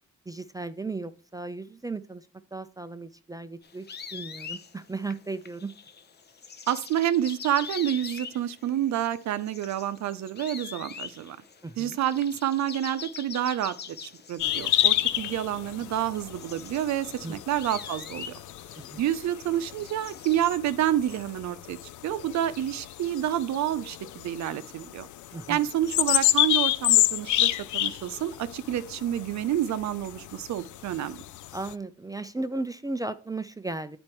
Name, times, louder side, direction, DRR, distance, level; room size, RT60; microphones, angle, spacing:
voice 1, 0.3-2.3 2.5-3.9 4.1-5.7 11.6-12.0 17.2-17.3 18.9-19.0 25.3-25.6 31.5-34.0, right 3 dB, 10° right, 0.4 m, -35 dB
sound 1, 3.6-20.6, left 6 dB, 35° left, 0.7 m, -43 dB
voice 2, 6.7-11.4 11.8-18.3 19.0-21.8 22.0-25.1 25.5-31.2, right 11 dB, 65° right, 0.6 m, -28 dB
sound 2, 14.4-31.7, left 14 dB, 75° left, 0.5 m, -29 dB
8.9 x 4.3 x 4.5 m
cardioid pair, 90°, 30 cm